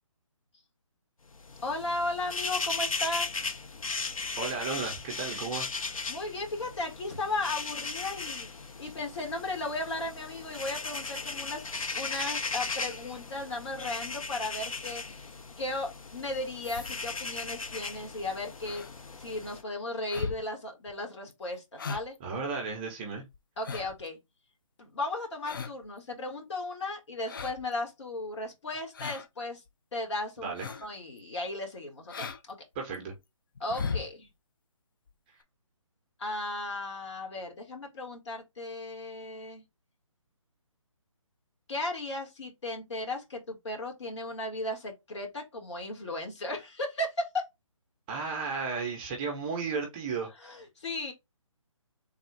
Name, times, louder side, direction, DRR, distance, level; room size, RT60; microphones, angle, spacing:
sound 1, 1.3-19.6, left 4 dB, 80° left, 0.7 m, -37 dB
voice 1, 1.6-3.4 6.1-8.5 8.8-11.6 11.9-18.9 19.2-22.1 23.6-24.2 24.8-29.6 29.9-30.5 30.8-32.6 33.6-34.3 36.2-39.6 41.7-47.4 50.4-51.1, left 2 dB, 55° left, 1.6 m, -35 dB
voice 2, 4.4-6.0 22.2-23.2 30.4-30.8 32.7-33.1 48.1-50.6, right 4 dB, 15° right, 0.7 m, -34 dB
sound 2, 16.6-17.3 18.6-18.9 19.4-19.6 20.1-20.4 20.9-21.0 21.3-21.4 21.8-22.2 22.5-22.6 23.3-24.1 25.4-25.9 27.2-27.7 28.9-29.3 29.7-29.8 30.6-30.9 31.2-31.3 32.1-32.4 32.7-33.2 33.6-34.1 35.1-35.2 35.4-35.5, left 5 dB, 40° left, 0.4 m, -37 dB
3.5 x 2.3 x 4.4 m
figure-of-eight pair, 150°, 17 cm